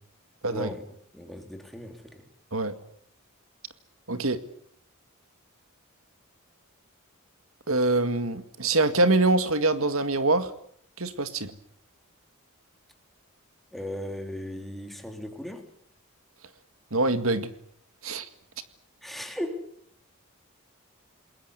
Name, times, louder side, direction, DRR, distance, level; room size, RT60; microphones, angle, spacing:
voice 1, 0.5-0.8 1.1-2.2 13.7-15.6 19.0-19.7, left 1 dB, ahead, 4 dB, 3.8 m, -37 dB
voice 2, 4.1-4.4 7.7-10.5 11.0-11.5 16.9-17.5 18.0-18.3, right 2 dB, 75° right, 10 dB, 2.0 m, -24 dB
28.5 x 21.0 x 8.2 m, 0.66 s
head